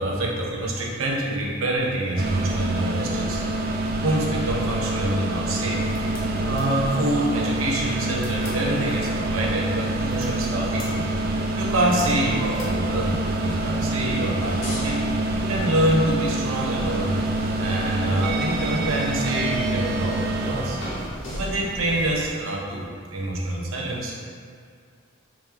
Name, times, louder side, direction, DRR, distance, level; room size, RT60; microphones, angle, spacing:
voice 1, 0.0-3.4 4.0-5.8 6.4-11.1 11.6-17.1 17.6-20.8 21.3-24.1, right 1 dB, 90° right, -2 dB, 0.7 m, -26 dB
sound 1, 2.2-21.1, right 2 dB, 50° right, 0.3 m, -26 dB
sound 2, 5.8-22.3, equal, 70° left, 1.0 m, -37 dB
3.5 x 3.1 x 3.2 m, 2.2 s
head